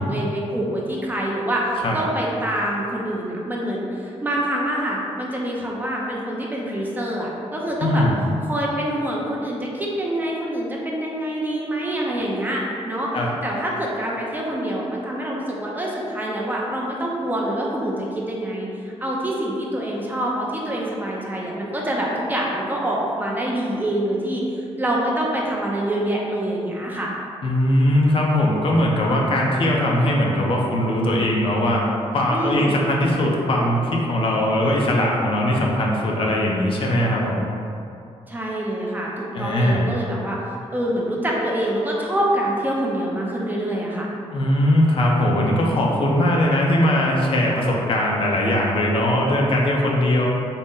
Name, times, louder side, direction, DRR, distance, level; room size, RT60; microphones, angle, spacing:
voice 1, 0.0-8.0 8.5-13.1 13.4-27.1 32.3-32.8 38.3-40.4 40.7-44.1, right 1 dB, 15° right, -3 dB, 0.5 m, -26 dB
voice 2, 7.8-8.1 13.1-13.3 27.4-31.8 32.1-37.4 39.3-39.9 44.3-50.3, left 1 dB, 50° left, -2 dB, 0.5 m, -20 dB
4.0 x 2.1 x 3.6 m, 2.6 s
wide cardioid pair, 130°, 12 cm